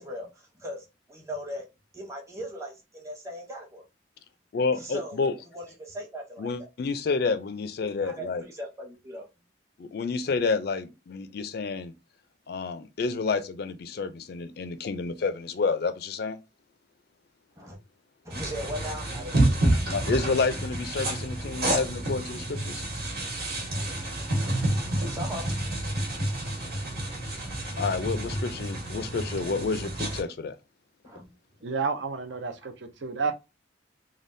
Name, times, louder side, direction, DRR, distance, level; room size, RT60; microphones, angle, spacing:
voice 1, 0.0-1.7 1.9-3.8 4.8-5.2 5.5-6.7 7.8-9.3 17.6-17.8 18.2-19.9 23.9-25.5 31.0-31.3 32.6-32.7, equal, 15° right, 0.8 m, -39 dB
voice 2, 4.5-5.3 6.4-8.4 9.8-11.9 12.5-16.4 19.9-22.8 27.8-30.6, left 4 dB, 55° left, 0.4 m, -29 dB
sound 1, 18.3-30.2, right 1 dB, 55° right, 1.2 m, -29 dB
voice 3, 31.6-33.3, right 5 dB, 70° right, 0.6 m, -30 dB
3.4 x 2.3 x 2.5 m
head